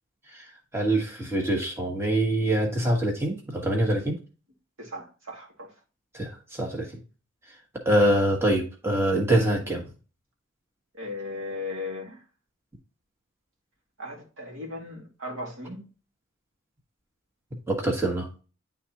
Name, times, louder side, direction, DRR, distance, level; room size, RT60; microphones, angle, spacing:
voice 1, 0.7-4.2 6.1-6.9 7.8-9.8 17.7-18.3, right 1 dB, 10° right, 1.2 m, -24 dB
voice 2, 4.8-5.7 10.9-12.2 14.0-15.9, left 2 dB, 85° right, 2.3 m, -37 dB
10.0 x 3.6 x 2.9 m
head